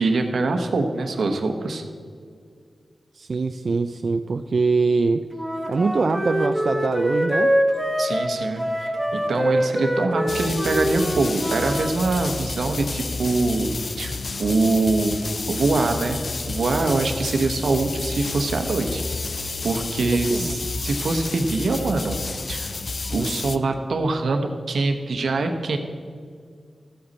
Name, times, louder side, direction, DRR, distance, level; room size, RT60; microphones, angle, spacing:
voice 1, 0.0-1.8 8.0-16.2 16.5-19.0 19.6-22.2 22.5-22.7 23.1-25.8, right 3 dB, 80° right, 5 dB, 1.1 m, -24 dB
voice 2, 3.1-5.3 5.7-7.5 20.3-20.6, right 4 dB, 55° right, 7 dB, 0.3 m, -23 dB
Wind instrument woodwind instrument, 5.3-11.9, equal, 5° right, 1.0 m, -24 dB
sound 1, 10.3-23.6, left 3 dB, 50° left, 0.4 m, -30 dB
14.0 x 8.0 x 4.2 m, 2.1 s
wide cardioid pair, 125°, 0 cm